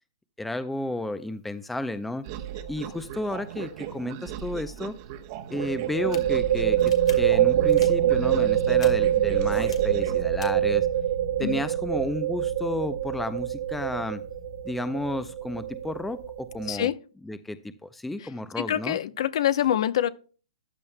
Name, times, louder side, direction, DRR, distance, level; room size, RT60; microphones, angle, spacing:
voice 1, 0.4-2.3 2.7-4.9 5.5-10.9 11.4-14.2 14.6-16.9 17.2-19.0, left 1 dB, 5° left, 0.5 m, -32 dB
sound 1, 2.2-10.2, right 10 dB, 40° right, 1.0 m, -38 dB
sound 2, 2.4-2.7 2.9-3.0 5.5-16.9, right 11 dB, 65° right, 1.5 m, -25 dB
sound 3, 5.9-6.2 6.8-7.1 7.7-7.9 8.8-8.9 9.6-9.8 10.4-10.5, left 7 dB, 80° left, 2.4 m, -42 dB
voice 2, 18.6-20.1, left 11 dB, 60° left, 0.8 m, -25 dB
14.0 x 10.5 x 2.2 m
hypercardioid pair, 145°, 3 cm